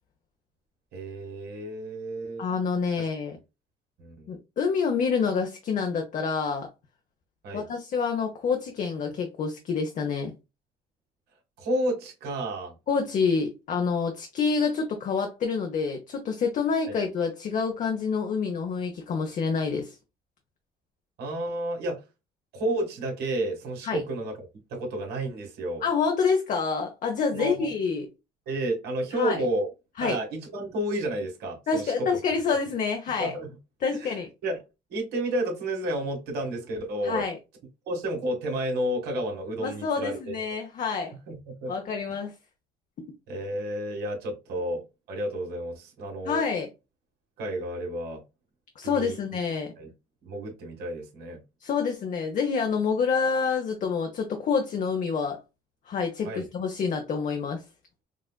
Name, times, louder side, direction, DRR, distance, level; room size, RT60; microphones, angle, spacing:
voice 1, 0.9-2.4 3.0-3.1 4.0-4.3 7.4-7.6 11.6-12.7 16.9-17.0 21.2-22.0 22.5-25.8 27.3-27.7 28.5-29.7 30.0-32.1 33.2-33.5 33.9-34.1 34.4-34.6 34.9-37.2 37.9-40.3 41.3-41.7 42.1-42.2 43.3-46.4 47.4-48.2 48.8-49.2 49.8-49.9 50.2-51.4 56.2-56.5, right 1 dB, 75° right, 1.7 m, -31 dB
voice 2, 2.4-3.4 4.3-6.7 7.5-10.3 12.9-19.9 23.8-24.0 25.8-28.1 29.1-29.4 30.0-30.2 31.7-33.4 33.8-34.3 37.0-37.4 39.6-41.1 41.7-42.3 46.2-46.7 48.8-49.7 51.6-55.4 55.9-57.6, left 5 dB, 50° left, 0.8 m, -27 dB
4.8 x 2.4 x 2.2 m
cardioid pair, 110°, 17 cm